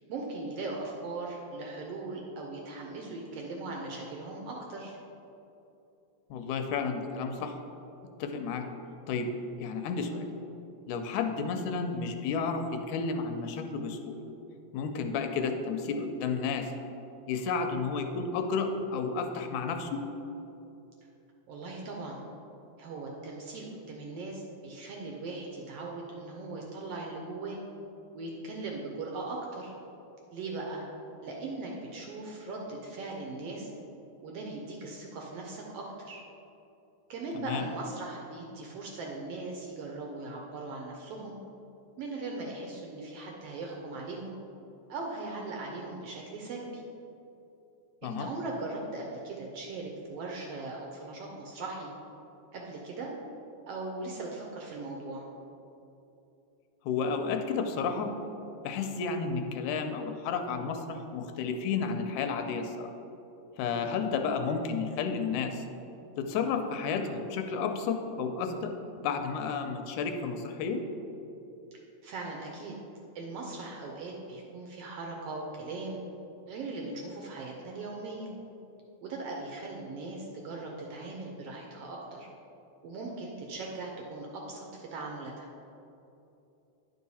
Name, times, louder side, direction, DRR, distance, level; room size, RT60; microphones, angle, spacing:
voice 1, 0.1-5.0 21.5-22.2 22.8-27.6 28.1-29.7 30.3-30.9 31.2-33.7 34.2-36.2 37.1-41.4 42.0-44.4 44.9-46.8 48.0-51.9 52.5-53.1 53.7-55.2 63.7-64.0 72.0-72.7 73.1-76.0 76.5-78.3 79.0-82.3 82.8-85.5, right 3 dB, 70° right, -1 dB, 1.5 m, -39 dB
voice 2, 6.3-7.5 8.2-8.6 9.1-9.3 9.6-10.3 10.9-14.2 14.7-16.7 17.3-20.0 37.4-37.6 48.0-48.3 56.9-58.1 58.6-62.9 63.6-65.6 66.2-68.7 69.0-70.8, left 5 dB, 85° left, 6 dB, 2.0 m, -32 dB
10.0 x 4.7 x 4.1 m, 2.9 s
omnidirectional pair, 3.4 m